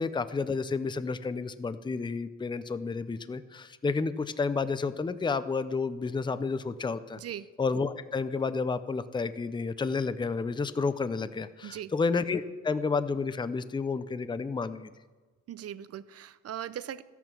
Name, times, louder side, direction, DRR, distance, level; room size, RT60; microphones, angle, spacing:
voice 1, 0.0-7.2 7.6-14.9, left 4 dB, 15° left, 13 dB, 0.6 m, -31 dB
voice 2, 7.2-7.5 11.6-11.9 15.5-17.0, right 10 dB, 55° right, 15 dB, 0.6 m, -39 dB
13.5 x 9.2 x 6.1 m, 1.3 s
cardioid pair, 90°, 30 cm